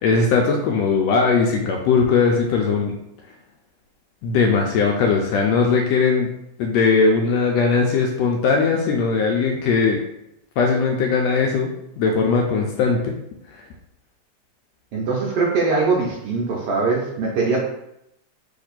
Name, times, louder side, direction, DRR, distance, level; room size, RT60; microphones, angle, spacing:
voice 1, 0.0-2.9 4.2-6.3 6.6-10.0 10.6-13.1, left 4 dB, 80° left, 1 dB, 1.6 m, -19 dB
voice 2, 14.9-17.6, right 4 dB, 70° right, -3 dB, 1.5 m, -21 dB
4.3 x 2.9 x 4.0 m, 0.80 s
omnidirectional pair, 3.3 m